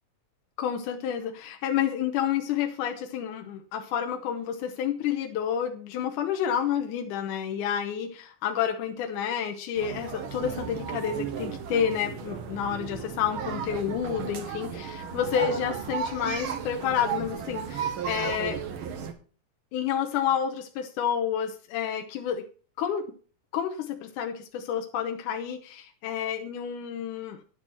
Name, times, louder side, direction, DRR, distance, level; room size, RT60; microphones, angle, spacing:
voice 1, 0.6-18.6 19.7-22.4 22.8-23.1 23.5-27.4, left 9 dB, 85° left, 5 dB, 2.4 m, -29 dB
sound 1, 9.8-19.1, right 7 dB, 60° right, 1.4 m, -34 dB
9.8 x 8.9 x 4.4 m, 0.40 s
omnidirectional pair, 3.6 m